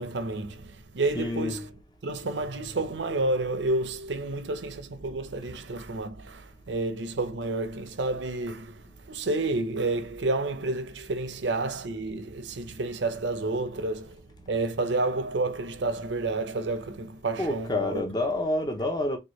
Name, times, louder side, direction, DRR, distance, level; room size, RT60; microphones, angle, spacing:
voice 1, 0.0-1.7 2.0-8.8 9.1-14.2 14.5-18.0, right 2 dB, 75° right, 0.7 m, -30 dB
voice 2, 1.2-1.5 17.4-19.2, left 1 dB, 20° left, 0.6 m, -28 dB
4.5 x 2.7 x 3.1 m
head